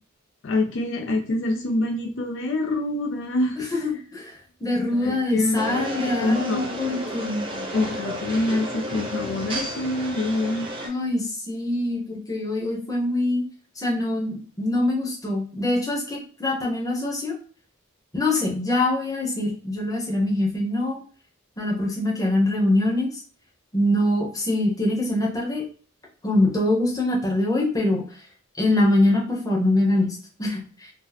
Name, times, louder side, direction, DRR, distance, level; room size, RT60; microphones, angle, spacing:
voice 1, 0.4-4.0 4.9-5.9 6.2-6.7 7.7-10.7, left 2 dB, 60° left, 3 dB, 0.4 m, -26 dB
voice 2, 3.7-4.3 4.6-7.5 10.8-13.4 13.8-17.4 18.1-21.0 21.6-23.1 23.7-25.6 26.2-28.0 28.6-30.6, left 1 dB, 15° left, -2 dB, 0.8 m, -24 dB
sound 1, 5.5-10.9, equal, 25° right, 0.7 m, -32 dB
2.8 x 2.0 x 3.9 m, 0.42 s
head